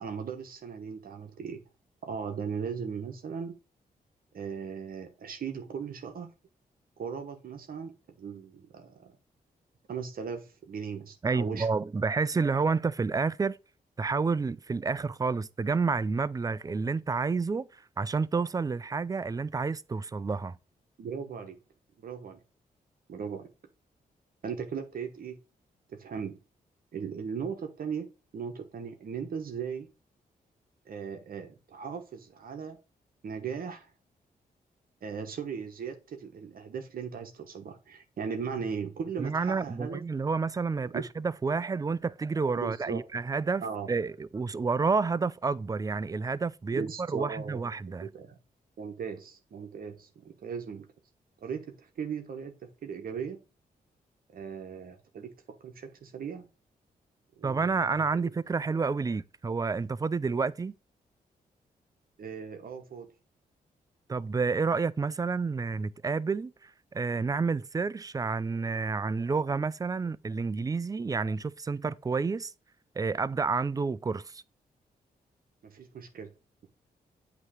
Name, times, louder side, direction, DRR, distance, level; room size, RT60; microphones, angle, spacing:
voice 1, 0.0-1.6 2.0-3.5 4.3-6.3 7.0-7.9 8.2-9.2 9.9-11.7 21.0-21.6 22.0-22.4 23.1-23.5 24.4-25.4 25.9-26.4 26.9-29.9 30.9-32.8 33.2-33.9 35.0-40.0 40.9-41.1 42.6-43.0 43.6-43.9 46.7-47.7 48.0-48.4 48.8-50.9 51.4-53.4 54.3-55.3 55.6-56.5 57.4-57.8 58.2-58.3 60.3-60.5 62.2-63.1 75.6-76.3, right 6 dB, 65° right, 1.1 m, -38 dB
voice 2, 11.2-13.6 14.0-20.6 39.2-48.1 57.4-60.7 64.1-72.5 73.0-74.4, right 4 dB, 20° right, 0.4 m, -29 dB
8.2 x 3.0 x 4.9 m
cardioid pair, 75°, 16 cm